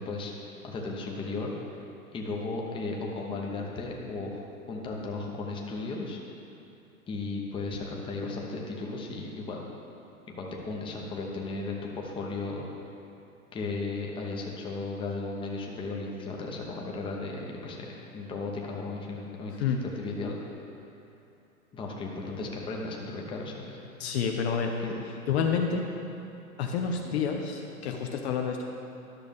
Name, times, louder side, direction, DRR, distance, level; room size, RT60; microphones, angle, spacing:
voice 1, 0.0-1.5 2.1-4.4 4.7-6.2 7.1-9.6 10.3-12.6 13.5-20.4 21.7-23.8 24.8-24.9, left 3 dB, 10° left, -1 dB, 0.8 m, -35 dB
voice 2, 24.0-24.7 25.3-25.8 26.6-28.6, left 6 dB, 45° left, 3 dB, 0.7 m, -28 dB
11.5 x 6.2 x 3.5 m, 2.7 s
hypercardioid pair, 125°, 44 cm